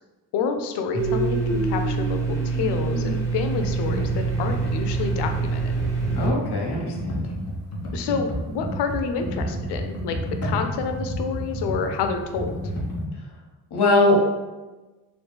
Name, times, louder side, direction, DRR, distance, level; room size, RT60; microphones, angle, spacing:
voice 1, 0.3-5.8 7.9-10.2 10.4-12.5, left 5 dB, 90° left, 6 dB, 0.5 m, -28 dB
Domestic sounds home sounds, 0.9-6.3, right 4 dB, 5° right, 0.8 m, -25 dB
Computer keyboard, 3.6-13.0, equal, 40° left, 1.0 m, -31 dB
voice 2, 6.1-7.3 13.7-14.2, left 2 dB, 70° left, -1 dB, 1.0 m, -21 dB
3.1 x 2.5 x 3.2 m, 1.2 s
cardioid pair, 75°, 40 cm